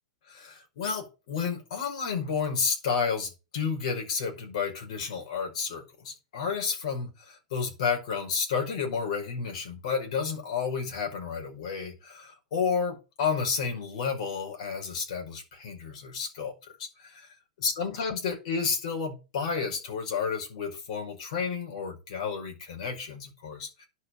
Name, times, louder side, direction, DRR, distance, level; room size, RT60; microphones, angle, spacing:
voice 1, 0.3-16.5 16.8-17.2 17.6-23.9, left 6 dB, 70° left, 3 dB, 5.4 m, -31 dB
10.5 x 5.7 x 6.6 m, 0.29 s
hypercardioid pair, 125°, 4 cm